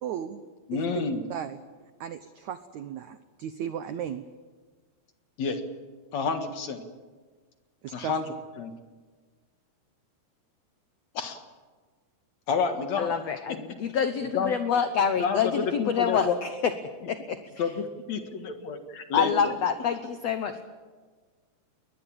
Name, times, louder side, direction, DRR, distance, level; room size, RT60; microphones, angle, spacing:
voice 1, 0.0-0.8 1.3-1.6 2.0-4.2 7.8-8.1, right 9 dB, 80° right, 11 dB, 1.6 m, -36 dB
voice 2, 0.7-1.2 5.4-5.6 6.1-6.8 7.9-8.7 11.1-11.4 12.5-13.1 14.3-14.5 15.2-16.4 17.6-19.5, left 5 dB, 55° left, 7 dB, 2.4 m, -29 dB
voice 3, 13.0-16.7 17.1-17.4 18.2-18.3 19.1-20.6, left 7 dB, 85° left, 9 dB, 1.4 m, -27 dB
21.5 x 20.5 x 8.8 m, 1.4 s
omnidirectional pair, 4.5 m